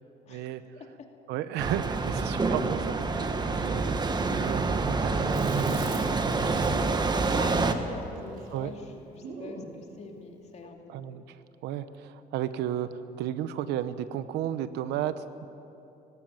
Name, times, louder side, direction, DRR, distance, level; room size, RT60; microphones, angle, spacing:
voice 1, 0.3-0.8 1.3-7.4 8.5-8.7 10.9-15.5, right 11 dB, 85° right, 13 dB, 1.0 m, -34 dB
sound 1, 1.6-7.7, right 3 dB, 25° right, 1.3 m, -27 dB
Chewing mastication, 5.3-9.7, right 4 dB, 70° right, 5.0 m, -45 dB
voice 2, 7.3-10.9, left 3 dB, 40° left, 2 dB, 2.5 m, -42 dB
19.0 x 16.5 x 8.9 m, 2.8 s
cardioid pair, 110°, 17 cm